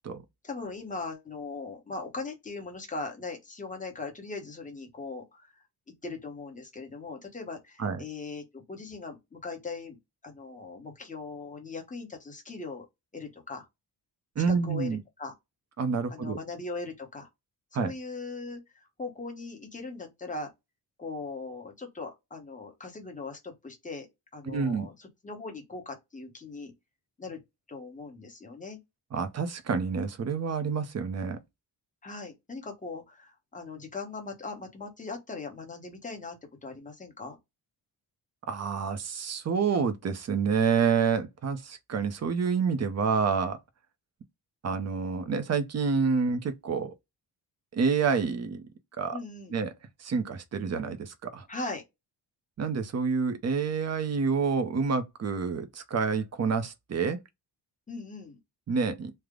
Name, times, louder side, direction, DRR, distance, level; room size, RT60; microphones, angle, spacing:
voice 1, 0.4-5.5 6.0-10.0 10.2-12.9 13.1-13.7 14.5-15.3 16.1-17.3 17.8-20.5 21.0-24.1 24.3-26.7 27.2-27.4 27.7-28.8 32.0-36.4 36.6-37.4 49.1-49.6 51.5-51.8 57.9-58.4, left 3 dB, 20° left, 0.9 m, -39 dB
voice 2, 14.4-15.0 15.8-16.4 17.7-17.9 24.5-24.9 29.1-31.4 38.5-43.6 44.6-46.9 47.7-48.6 49.0-49.2 49.5-49.7 50.0-51.5 52.6-57.2 58.7-59.1, right 5 dB, 40° right, 0.6 m, -28 dB
3.3 x 2.0 x 3.6 m
wide cardioid pair, 145°, 43 cm